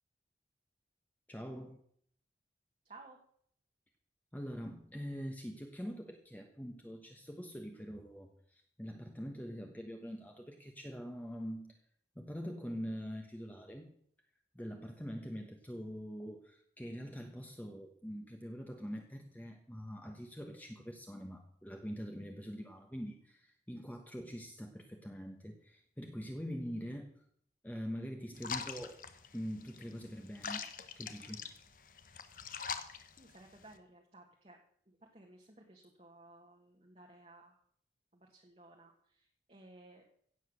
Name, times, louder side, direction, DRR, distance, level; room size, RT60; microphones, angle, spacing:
voice 1, 1.3-1.8 4.3-11.8 12.1-13.9 14.5-27.1 27.6-29.0 29.3-30.6 31.0-31.4, equal, 10° left, 2 dB, 1.2 m, -44 dB
voice 2, 2.8-3.2 33.2-34.6 34.9-37.6 38.1-40.1, right 2 dB, 35° right, 0 dB, 1.6 m, -57 dB
sound 1, 28.4-33.8, left 6 dB, 50° left, 1.1 m, -44 dB
16.0 x 8.1 x 6.5 m, 0.65 s
head